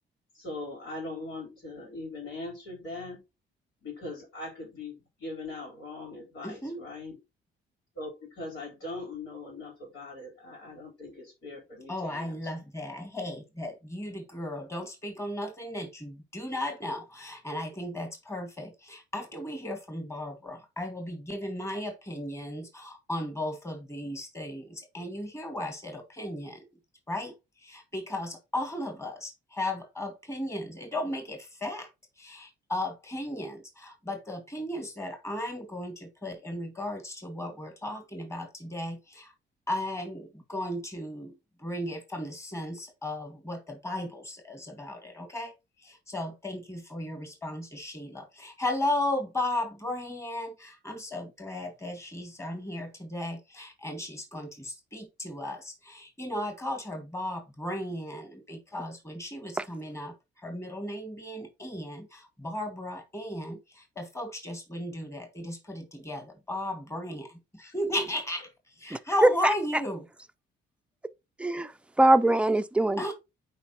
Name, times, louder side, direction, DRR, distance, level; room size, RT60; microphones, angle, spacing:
voice 1, 0.3-3.2 3.8-7.2 7.9-12.4, left 2 dB, 80° left, 4.2 m, -40 dB
voice 2, 6.4-6.8 11.9-26.6 27.1-31.9 32.2-39.3 39.7-45.5 45.8-70.0 73.0-73.1, left 1 dB, 15° left, 2.0 m, -35 dB
voice 3, 68.9-69.5 71.4-71.7 72.0-73.1, right 1 dB, 5° right, 0.5 m, -22 dB
8.9 x 4.7 x 3.0 m
cardioid pair, 90°, 20 cm